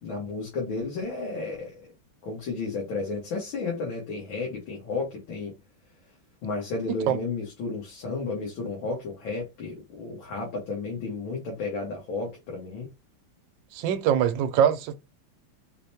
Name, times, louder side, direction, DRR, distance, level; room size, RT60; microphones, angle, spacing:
voice 1, 0.0-1.9 2.2-5.5 6.4-12.9, left 3 dB, 90° left, 2.0 m, -33 dB
voice 2, 13.7-14.9, right 9 dB, 80° right, 1.3 m, -23 dB
5.0 x 2.1 x 2.7 m
omnidirectional pair, 2.1 m